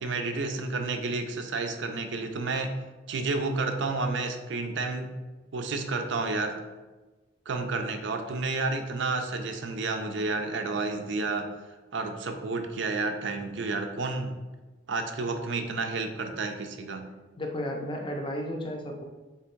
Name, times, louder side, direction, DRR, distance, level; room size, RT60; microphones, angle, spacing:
voice 1, 0.0-2.8 3.1-5.1 5.5-6.5 7.5-11.5 11.9-14.4 14.9-17.1, right 3 dB, 70° right, 6 dB, 0.5 m, -30 dB
voice 2, 17.4-19.0, left 1 dB, 25° left, 2 dB, 0.5 m, -33 dB
3.5 x 2.9 x 4.5 m, 1.2 s
head